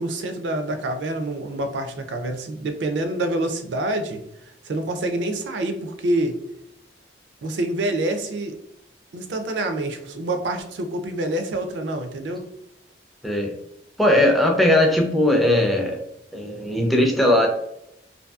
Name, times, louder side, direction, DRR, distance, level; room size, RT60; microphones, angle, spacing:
voice 1, 0.0-4.2 4.6-6.4 7.4-8.6 9.1-12.5, right 1 dB, 75° right, 7 dB, 0.4 m, -26 dB
voice 2, 14.0-16.0 16.3-17.5, left 1 dB, ahead, 1 dB, 0.4 m, -19 dB
2.6 x 2.6 x 2.3 m, 0.80 s
head